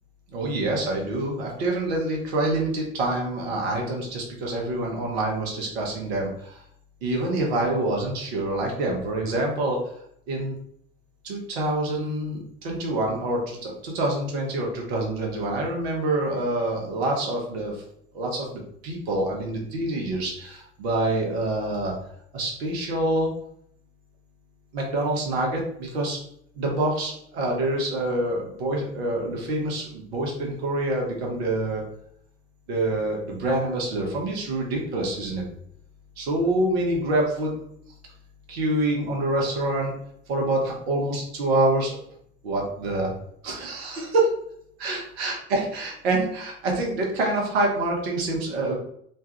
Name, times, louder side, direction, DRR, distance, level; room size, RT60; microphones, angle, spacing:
voice 1, 0.3-6.6 7.0-9.8 10.3-10.6 11.2-17.8 18.1-21.9 22.3-23.3 24.7-26.2 26.5-31.8 32.7-35.5 36.2-37.5 38.5-39.9 40.3-42.0 42.4-43.1 43.4-44.3 44.8-48.8, right 2 dB, 70° right, 0 dB, 0.9 m, -26 dB
3.1 x 2.3 x 2.8 m, 0.68 s
figure-of-eight pair, 55°, 32 cm